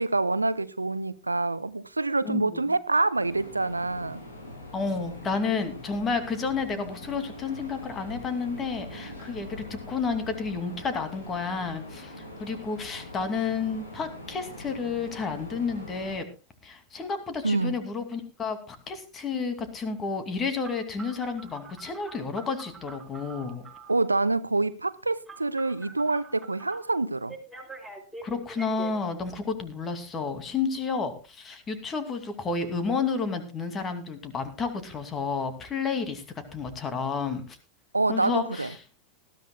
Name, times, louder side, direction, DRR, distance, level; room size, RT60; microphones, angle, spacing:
voice 1, 0.0-4.2 17.4-17.8 23.9-27.4 37.9-38.7, right 3 dB, 80° right, 0.6 m, -26 dB
voice 2, 2.2-2.7 4.7-16.3 16.6-23.7 28.2-36.2 36.5-37.6 38.1-38.7, left 5 dB, 25° left, 2.6 m, -31 dB
sound 1, 3.2-16.2, left 1 dB, 80° left, 7.5 m, -43 dB
Telephone, 20.6-24.0 25.3-26.8 27.3-28.9, right 3 dB, ahead, 6.3 m, -44 dB
20.0 x 13.5 x 2.3 m
figure-of-eight pair, 90°, 0 cm